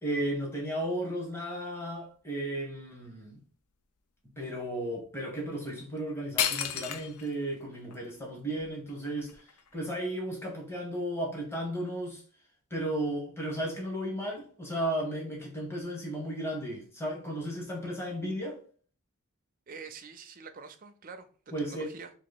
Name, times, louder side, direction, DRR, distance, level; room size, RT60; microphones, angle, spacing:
voice 1, 0.0-3.4 4.4-12.2 12.7-18.6 21.5-21.9, right 1 dB, 10° left, 1.1 m, -34 dB
sound 1, 6.0-6.1 6.4-7.3 7.9-8.0 8.6-9.9, left 9 dB, 80° left, 0.5 m, -32 dB
voice 2, 19.7-21.3 21.7-22.1, right 5 dB, 40° right, 0.5 m, -45 dB
2.9 x 2.9 x 4.0 m
head